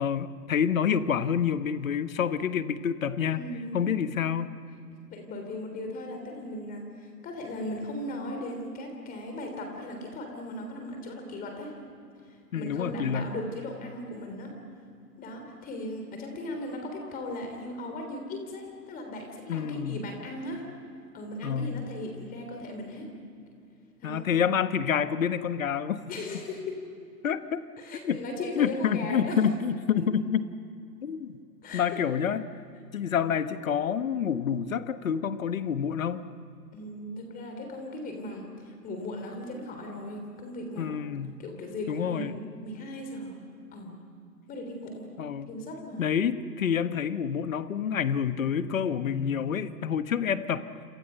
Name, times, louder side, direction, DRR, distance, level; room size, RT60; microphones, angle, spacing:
voice 1, 0.0-3.4 3.7-4.5 12.5-13.3 19.5-20.0 21.4-21.9 24.0-26.0 27.2-27.6 28.0-28.2 28.6-30.4 31.0-31.3 31.7-32.5 32.9-36.2 40.8-41.4 41.9-42.3 45.2-45.5 46.0-50.6, left 7 dB, 55° left, 12 dB, 1.4 m, -28 dB
voice 2, 3.3-4.0 5.1-11.7 12.2-14.5 15.2-20.6 21.1-23.1 24.0-24.2 26.1-26.8 27.8-29.4 29.9-30.0 31.6-32.0 36.7-40.9 41.4-42.4 42.6-43.4 43.7-43.9 44.5-45.1 45.5-46.2, left 1 dB, 15° left, 3 dB, 3.3 m, -37 dB
28.0 x 28.0 x 5.7 m, 2.5 s
figure-of-eight pair, 125°, 48 cm